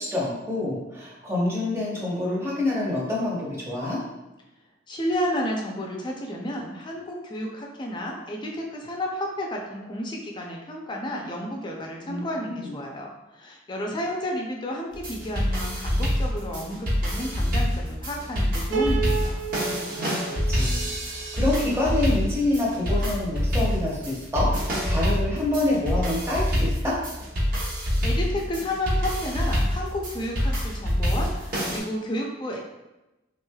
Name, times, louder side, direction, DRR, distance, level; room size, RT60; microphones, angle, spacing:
voice 1, 0.0-4.0 12.0-12.2 12.6-12.7 19.9-26.9, left 2 dB, 15° right, -5 dB, 0.8 m, -27 dB
voice 2, 4.9-13.1 13.4-19.4 27.7-32.6, equal, 25° left, 0 dB, 0.4 m, -31 dB
sound 1, 14.9-31.8, equal, 50° right, 1.0 m, -26 dB
Piano, 18.7-21.9, right 5 dB, 70° right, 0.5 m, -32 dB
3.4 x 3.1 x 2.2 m, 1.0 s
head